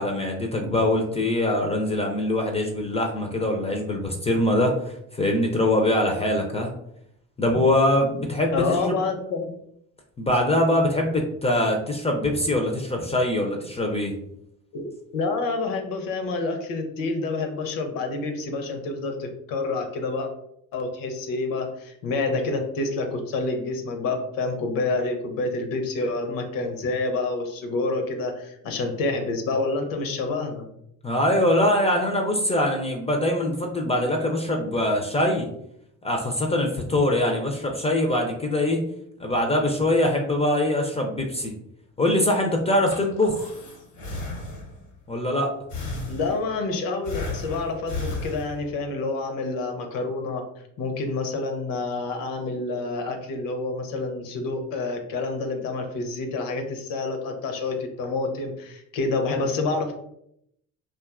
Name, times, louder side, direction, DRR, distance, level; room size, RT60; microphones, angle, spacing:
voice 1, 0.0-6.7 7.4-8.8 10.2-14.1 31.0-35.5 36.0-38.8 39.2-41.5 42.0-43.4 45.1-45.5, left 1 dB, 20° left, 2 dB, 0.4 m, -23 dB
voice 2, 8.5-9.5 14.7-20.3 20.7-30.7 46.1-50.4 50.8-59.9, left 3 dB, 65° left, 5 dB, 0.6 m, -28 dB
Breathing, 42.6-44.9 45.7-46.6 47.1-48.9, left 2 dB, 85° left, 1.0 m, -34 dB
2.5 x 2.3 x 2.3 m, 0.75 s
supercardioid pair, 65°, 36 cm